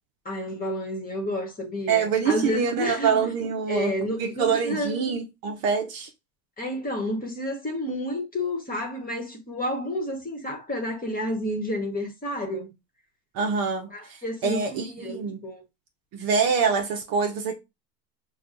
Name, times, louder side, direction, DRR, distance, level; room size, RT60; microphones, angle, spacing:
voice 1, 0.2-3.1 3.7-5.0 6.6-12.7 13.9-15.6, left 1 dB, 15° left, 1.2 m, -30 dB
voice 2, 1.9-6.1 13.3-15.4 16.1-17.5, right 6 dB, 45° right, 0.8 m, -25 dB
6.2 x 2.3 x 2.5 m
supercardioid pair, 105°, 50 cm